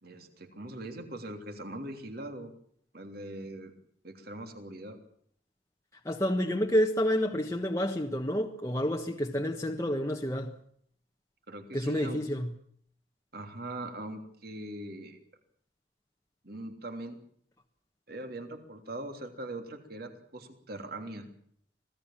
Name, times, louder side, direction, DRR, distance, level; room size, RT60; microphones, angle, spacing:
voice 1, 0.0-2.5 2.9-3.7 4.0-5.0 11.5-12.2 13.3-15.2 16.4-17.2 18.1-21.3, right 1 dB, 55° right, 3.3 m, -41 dB
voice 2, 6.0-10.5 11.7-12.5, equal, 15° left, 1.4 m, -29 dB
26.0 x 17.5 x 7.4 m
head